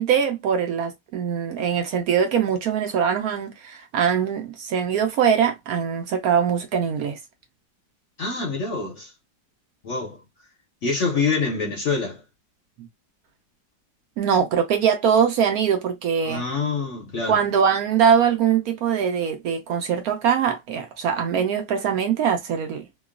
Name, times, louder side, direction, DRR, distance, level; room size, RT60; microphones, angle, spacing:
voice 1, 0.0-7.2 12.8-12.9 14.2-16.4 17.3-22.9, right 7 dB, 70° right, 1.0 m, -22 dB
voice 2, 8.2-9.1 9.8-10.2 10.8-12.2 16.2-17.4, left 4 dB, 60° left, 0.8 m, -26 dB
3.0 x 2.2 x 2.3 m
omnidirectional pair, 1.8 m